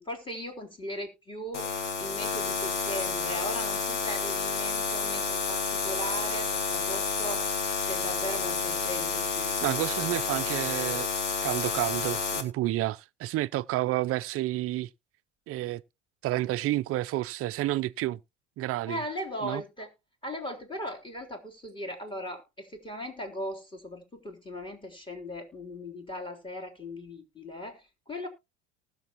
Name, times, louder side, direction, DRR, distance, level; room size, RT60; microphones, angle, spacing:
voice 1, 0.0-1.7 2.0-7.4 7.8-9.6 18.9-19.9 20.2-28.3, left 1 dB, 15° left, 3.5 m, -38 dB
sound 1, 1.5-12.4, left 5 dB, 85° left, 2.0 m, -30 dB
voice 2, 9.6-11.1 11.4-14.9 15.5-15.8 16.2-18.2 18.6-19.0 19.4-19.6, right 16 dB, 40° right, 0.6 m, -30 dB
19.5 x 6.9 x 3.0 m
hypercardioid pair, 90°, 35 cm